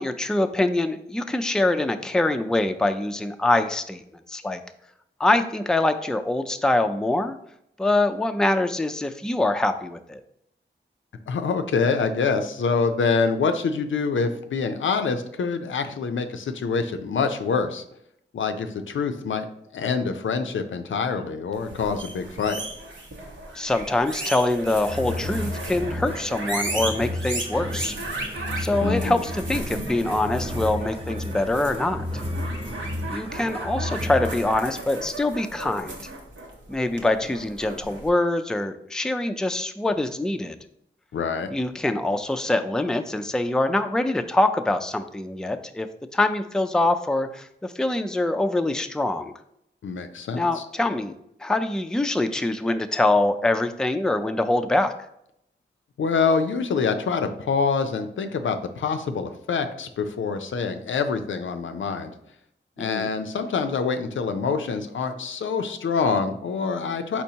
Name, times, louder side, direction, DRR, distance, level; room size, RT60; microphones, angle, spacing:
voice 1, 0.0-4.0 4.3-4.6 5.2-7.4 7.8-10.2 23.5-28.0 28.6-32.0 33.1-36.0 36.7-40.6 41.5-45.9 46.1-49.3 50.3-51.1 51.4-54.9 62.8-63.1, left 2 dB, 5° left, 7 dB, 0.4 m, -24 dB
voice 2, 11.3-17.8 18.3-19.4 19.7-22.6 28.8-29.2 41.1-41.5 49.8-50.6 56.0-62.1 62.8-67.2, left 5 dB, 80° left, 7 dB, 0.4 m, -25 dB
sound 1, 21.6-38.1, right 2 dB, 75° right, 1.0 m, -35 dB
sound 2, 24.7-34.6, left 1 dB, 30° right, 0.7 m, -33 dB
4.4 x 4.2 x 2.8 m, 0.75 s
cardioid pair, 50°, 20 cm